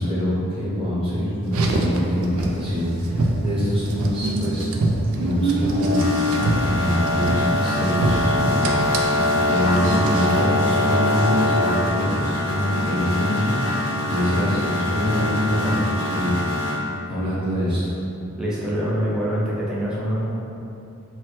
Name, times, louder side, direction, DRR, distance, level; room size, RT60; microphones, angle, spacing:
voice 1, 0.0-4.7 5.1-6.1 6.6-16.4 17.1-17.9, equal, 25° right, -11 dB, 0.8 m, -24 dB
Car, 1.4-10.4, right 2 dB, 75° right, 0.3 m, -25 dB
sound 1, 5.7-16.8, left 1 dB, 75° left, 0.5 m, -24 dB
voice 2, 18.4-20.3, equal, 5° right, -8 dB, 0.4 m, -24 dB
3.1 x 2.1 x 2.9 m, 2.7 s
head